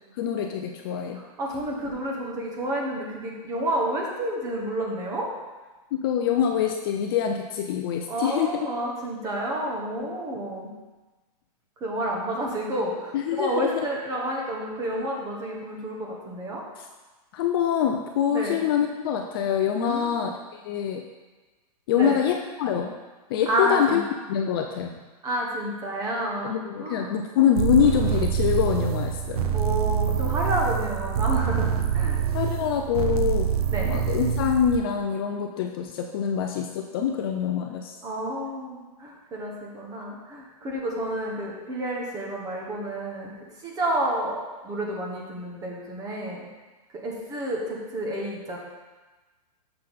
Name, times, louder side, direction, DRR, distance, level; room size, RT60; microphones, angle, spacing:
voice 1, 0.2-1.2 5.9-8.5 10.0-10.2 13.1-13.9 16.8-16.9 17.3-21.0 21.9-22.9 23.3-24.0 24.3-25.0 26.4-29.4 32.3-33.5 33.8-37.9, left 8 dB, 35° left, 3 dB, 0.4 m, -25 dB
voice 2, 1.1-5.3 8.1-10.7 11.8-16.6 18.3-18.6 19.7-20.2 21.9-22.2 23.5-24.0 25.2-27.1 29.5-32.2 33.7-33.9 38.0-43.3 43.6-46.5 47.0-48.6, right 1 dB, 15° right, -1 dB, 1.1 m, -30 dB
sound 1, 27.5-34.8, right 8 dB, 70° right, 0.6 m, -25 dB
6.6 x 5.6 x 4.1 m, 1.2 s
hypercardioid pair, 155°, 20 cm